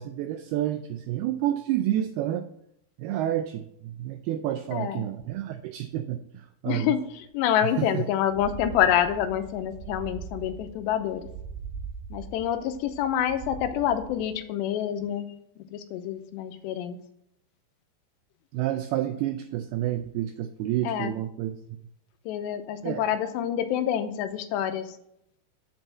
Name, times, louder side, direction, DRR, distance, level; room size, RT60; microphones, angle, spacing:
voice 1, 0.0-2.5 3.0-6.9 7.8-8.1 18.5-21.6 22.8-23.0, right 12 dB, 85° right, 8 dB, 2.2 m, -29 dB
voice 2, 4.7-5.1 6.7-11.3 12.1-17.0 20.8-21.1 22.3-25.0, left 10 dB, 85° left, 9 dB, 2.8 m, -27 dB
sound 1, 7.3-7.4 7.7-7.8 8.2-14.4, right 6 dB, 70° right, 2.8 m, -41 dB
8.0 x 5.4 x 7.3 m, 0.76 s
omnidirectional pair, 5.0 m